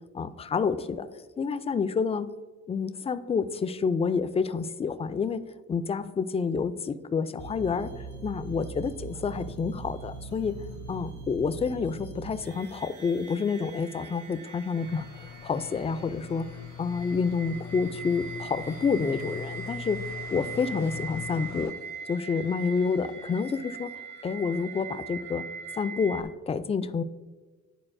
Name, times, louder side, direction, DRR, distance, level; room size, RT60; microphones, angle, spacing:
voice 1, 0.1-1.1 1.4-2.3 2.7-5.4 5.7-10.6 10.9-16.5 16.8-20.0 20.3-21.7 22.1-25.4 25.8-27.0, left 5 dB, 20° left, 12 dB, 0.3 m, -29 dB
sound 1, 7.4-26.2, right 5 dB, 85° right, 1.1 m, -41 dB
sound 2, 14.8-21.7, left 9 dB, 65° left, 0.7 m, -42 dB
11.0 x 4.1 x 2.6 m, 1.3 s
cardioid pair, 90°, 30 cm